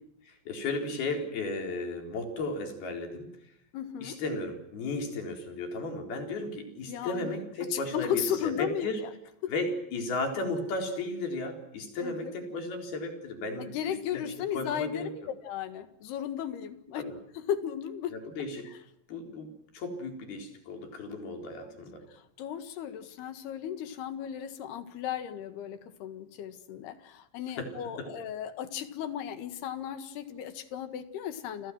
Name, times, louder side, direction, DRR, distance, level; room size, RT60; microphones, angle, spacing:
voice 1, 0.2-3.4 4.0-9.0 9.5-15.1 16.9-17.2 18.1-18.7 19.1-22.1 27.6-28.1, left 2 dB, 75° left, 4 dB, 6.0 m, -35 dB
voice 2, 3.7-4.2 6.9-7.3 7.7-9.1 9.4-9.5 12.0-12.3 13.6-17.0 17.5-18.2 18.7-18.8 21.6-21.7 22.1-31.7, left 9 dB, 90° left, 10 dB, 3.8 m, -35 dB
29.5 x 26.0 x 6.2 m, 0.74 s
omnidirectional pair, 4.5 m